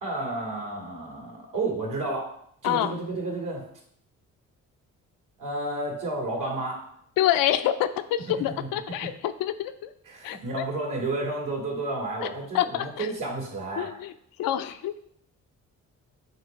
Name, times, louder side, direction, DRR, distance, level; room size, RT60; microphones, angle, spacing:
voice 1, 0.0-2.3 2.6-3.6 5.4-6.8 8.5-8.7 9.0-9.1 10.0-13.9, right 2 dB, 70° right, -1 dB, 2.4 m, -31 dB
voice 2, 2.6-3.0 7.2-9.9 10.2-10.6 12.5-13.1 13.8-14.1 14.4-15.0, left 11 dB, 85° left, 10 dB, 0.5 m, -27 dB
7.7 x 3.1 x 5.2 m, 0.69 s
cardioid pair, 75°, 33 cm